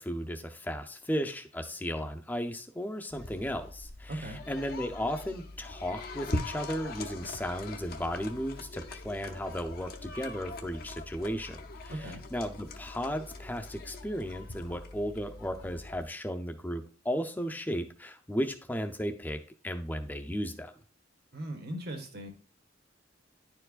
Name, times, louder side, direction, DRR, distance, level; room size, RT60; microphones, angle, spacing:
voice 1, 0.0-19.4 19.6-20.7, equal, 10° left, 5 dB, 0.6 m, -35 dB
sound 1, 3.1-16.0, left 2 dB, 50° left, 0.7 m, -42 dB
voice 2, 4.1-4.4 11.9-12.2 21.3-22.3, right 1 dB, 55° right, 4 dB, 1.4 m, -38 dB
10.5 x 4.5 x 2.4 m, 0.39 s
head